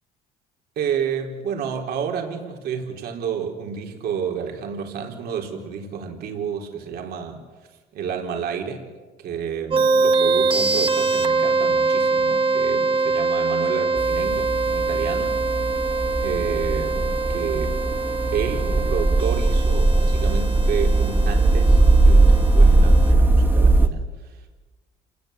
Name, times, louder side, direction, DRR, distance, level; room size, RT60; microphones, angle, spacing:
voice 1, 0.8-7.4 7.9-8.9 9.2-15.4 16.2-17.8 18.3-24.5, right 7 dB, 70° right, 2 dB, 4.2 m, -30 dB
sound 1, 9.7-23.1, right 3 dB, 30° right, 1.8 m, -24 dB
sound 2, 14.0-23.9, right 2 dB, 10° right, 2.2 m, -19 dB
29.0 x 19.5 x 8.2 m, 1.3 s
cardioid pair, 110°, 17 cm